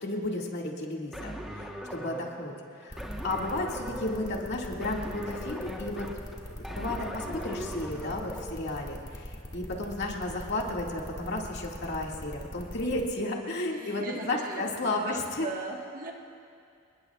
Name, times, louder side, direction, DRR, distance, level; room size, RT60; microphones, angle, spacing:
voice 1, 0.0-6.1 6.6-15.5, left 2 dB, 55° left, -1 dB, 2.1 m, -33 dB
sound 1, 1.1-8.5, equal, ahead, 1.2 m, -40 dB
sound 2, 2.9-13.0, left 1 dB, 20° left, 1.8 m, -42 dB
voice 2, 13.6-16.1, right 3 dB, 40° right, 0 dB, 1.5 m, -39 dB
27.5 x 20.5 x 2.4 m, 2.4 s
head